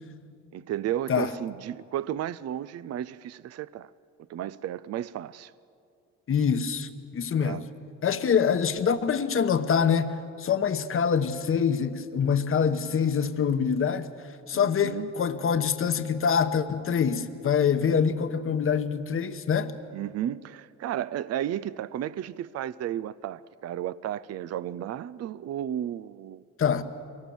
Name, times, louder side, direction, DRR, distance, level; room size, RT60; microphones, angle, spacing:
voice 1, 0.5-3.9 4.3-5.5 7.4-7.6 14.5-15.1 19.9-26.4, right 11 dB, 55° right, 0.5 m, -33 dB
voice 2, 6.3-7.6 8.0-14.1 14.5-19.7 26.6-26.8, left 7 dB, 45° left, 1.1 m, -25 dB
23.5 x 18.5 x 7.1 m
cardioid pair, 90°, 30 cm